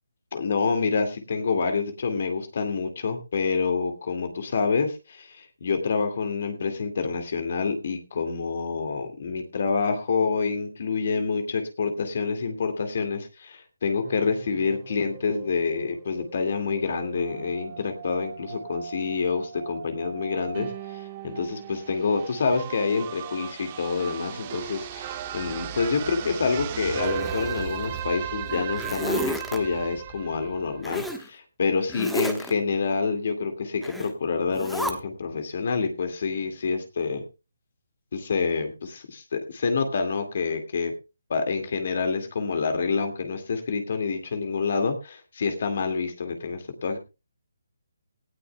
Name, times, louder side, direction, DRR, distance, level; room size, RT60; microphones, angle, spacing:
voice 1, 0.3-20.7 21.2-37.2 38.1-40.9 41.3-47.0, left 5 dB, 55° left, 6 dB, 2.2 m, -27 dB
sound 1, 14.0-31.1, right 9 dB, 30° right, 1.5 m, -37 dB
Zipper (clothing), 27.0-28.0 28.5-29.6 30.8-31.2 31.9-32.5 33.8-34.1 34.5-34.9, equal, ahead, 1.3 m, -32 dB
18.0 x 13.0 x 2.3 m, 0.29 s
hypercardioid pair, 155°, 0 cm